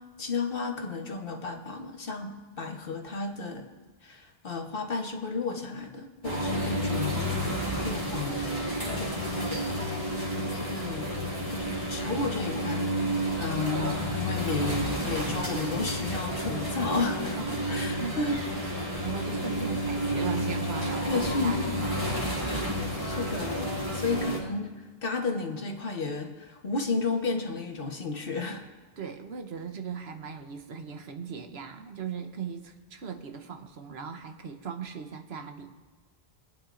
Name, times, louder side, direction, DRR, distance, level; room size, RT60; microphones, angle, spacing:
voice 1, 0.2-3.7 4.0-7.5 7.8-12.8 13.4-17.4 17.7-18.4 21.1-21.6 23.0-28.7, left 3 dB, 60° left, 3 dB, 1.3 m, -33 dB
sound 1, 6.2-24.4, equal, 35° right, 2.1 m, -31 dB
voice 2, 18.0-18.4 19.0-22.3 29.0-35.7, right 6 dB, 85° right, 6 dB, 1.2 m, -38 dB
24.5 x 9.0 x 2.5 m, 1.3 s
omnidirectional pair, 1.0 m